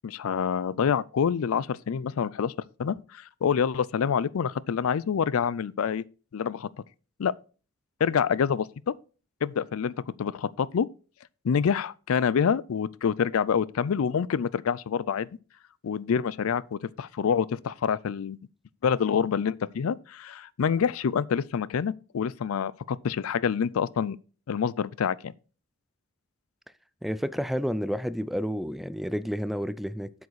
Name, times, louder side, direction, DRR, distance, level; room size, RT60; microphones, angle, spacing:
voice 1, 0.0-2.5 2.8-6.0 6.3-6.7 7.2-7.3 8.0-8.9 9.4-10.9 11.4-15.3 15.8-18.4 18.8-24.2 24.5-25.3, left 7 dB, 75° left, 0.4 m, -27 dB
voice 2, 27.0-30.1, equal, ahead, 0.3 m, -30 dB
8.0 x 7.2 x 4.7 m
head